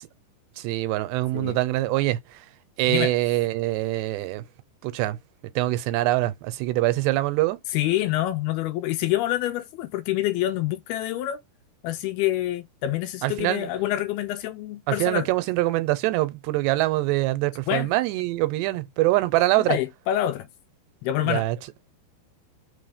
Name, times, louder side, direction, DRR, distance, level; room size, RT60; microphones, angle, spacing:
voice 1, 0.6-2.2 2.8-4.4 4.8-5.2 5.6-7.6 13.2-13.7 14.9-19.8 21.2-21.6, right 17 dB, 85° right, 2.9 m, -24 dB
voice 2, 7.7-11.4 11.8-15.3 17.7-17.9 19.6-20.5 21.0-21.5, left 13 dB, 80° left, 2.4 m, -26 dB
5.8 x 4.1 x 5.0 m
omnidirectional pair, 4.9 m